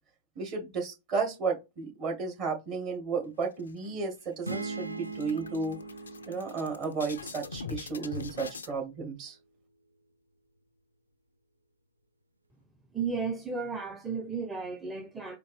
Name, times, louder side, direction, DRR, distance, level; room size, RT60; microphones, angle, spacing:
voice 1, 0.4-5.8 6.3-9.4, right 4 dB, 40° right, 2.0 m, -33 dB
sound 1, 3.4-4.2 4.5-4.7 5.0-8.7, left 5 dB, 75° left, 0.5 m, -43 dB
sound 2, 4.4-8.2, right 3 dB, 85° right, 0.4 m, -41 dB
voice 2, 12.9-15.4, right 5 dB, 10° right, 0.8 m, -34 dB
4.4 x 2.6 x 3.5 m
figure-of-eight pair, 90°, 0 cm